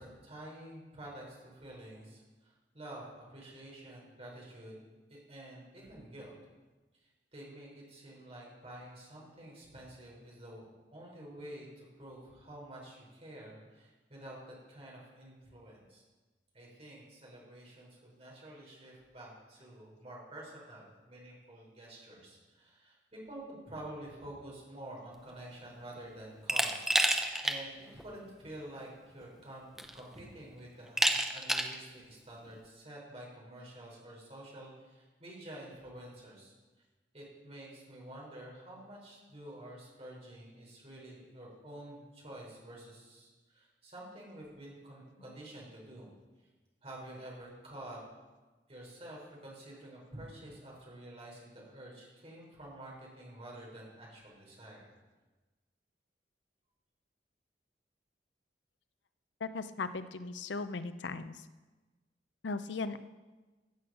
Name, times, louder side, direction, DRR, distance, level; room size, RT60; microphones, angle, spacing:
voice 1, 0.0-4.7 5.1-6.3 7.3-10.7 10.9-16.0 16.5-26.8 27.4-36.5 37.1-46.1 46.8-48.0 48.7-54.9, right 1 dB, 35° right, -3 dB, 4.2 m, -49 dB
Glass, 26.5-27.6 28.0-28.1 29.2-29.3 29.8-30.2 31.0-31.8, right 1 dB, 5° right, 0.6 m, -29 dB
voice 2, 59.4-61.3 62.4-63.0, left 3 dB, 90° left, 12 dB, 0.6 m, -37 dB
15.0 x 6.3 x 6.2 m, 1.2 s
head